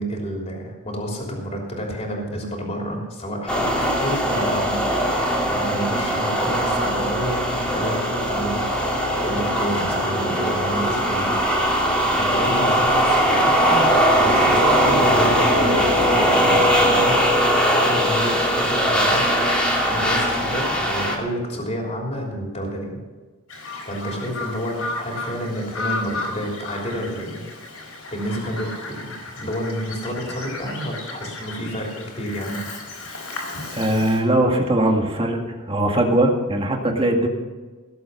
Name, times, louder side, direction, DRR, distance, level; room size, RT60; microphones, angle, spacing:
voice 1, 0.0-4.8 5.5-11.3 12.1-13.9 14.2-17.2 17.8-19.3 19.8-22.9 23.8-27.5 27.8-32.6, equal, 30° left, -1 dB, 3.3 m, -30 dB
sound 1, 3.5-21.2, equal, 5° left, 2.6 m, -20 dB
Bird vocalization bird call bird song, 23.5-34.2, left 3 dB, 85° left, 4.3 m, -34 dB
voice 2, 33.7-35.4 35.7-37.3, right 1 dB, 25° right, 2 dB, 2.0 m, -20 dB
18.0 x 7.9 x 5.6 m, 1.3 s
head